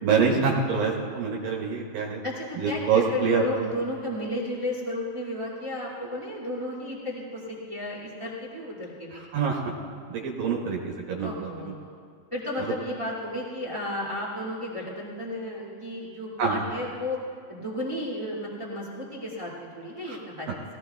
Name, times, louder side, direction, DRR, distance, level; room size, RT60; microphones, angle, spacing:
voice 1, 0.0-2.2 2.6-3.7 9.1-9.7 10.1-11.7 12.6-12.7 16.4-16.6 20.0-20.2, right 5 dB, 70° right, -2 dB, 2.9 m, -26 dB
voice 2, 2.2-9.2 11.2-11.9 12.3-17.2 17.5-20.6, left 1 dB, 20° right, -5 dB, 0.8 m, -33 dB
21.0 x 16.5 x 2.3 m, 2.2 s
omnidirectional pair, 4.7 m